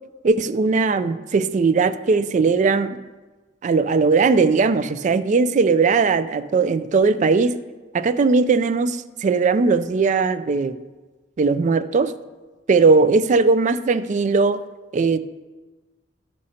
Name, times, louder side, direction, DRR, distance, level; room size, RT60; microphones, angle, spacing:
voice 1, 0.2-2.9 3.6-7.5 7.9-10.7 11.4-12.1 12.7-14.6 14.9-15.2, right 4 dB, 40° right, 14 dB, 0.3 m, -19 dB
12.5 x 6.3 x 2.8 m, 1.2 s
head